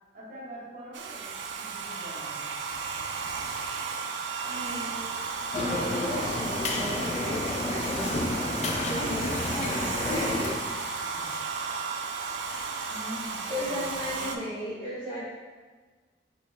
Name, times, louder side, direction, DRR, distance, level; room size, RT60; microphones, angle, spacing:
voice 1, 0.1-2.5 11.1-11.8 12.4-14.3, right 1 dB, 45° right, -7 dB, 1.3 m, -45 dB
Domestic sounds home sounds, 0.9-14.4, right 4 dB, 80° right, 0.4 m, -34 dB
voice 2, 4.4-5.2 5.6-8.5 8.9-10.5 13.5-15.3, left 1 dB, 20° left, -12 dB, 0.8 m, -35 dB
sound 1, 5.5-10.6, left 3 dB, 40° left, 0.3 m, -31 dB
4.3 x 3.1 x 3.2 m, 1.4 s
head